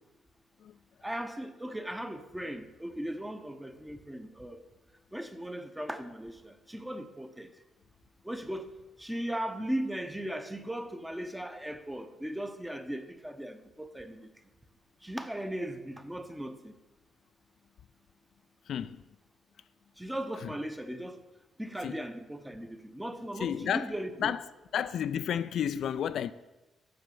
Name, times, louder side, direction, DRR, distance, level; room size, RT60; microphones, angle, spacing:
voice 1, 1.0-4.6 5.1-7.5 8.2-8.7 9.0-14.3 15.0-16.8 20.0-21.2 21.6-24.3, right 1 dB, 5° right, 0.8 m, -37 dB
voice 2, 18.7-19.0 20.4-20.5 21.8-22.0 23.4-23.9 24.2-24.4 24.7-26.3, left 9 dB, 70° left, 0.3 m, -31 dB
7.8 x 6.5 x 6.9 m
cardioid pair, 110°, 0 cm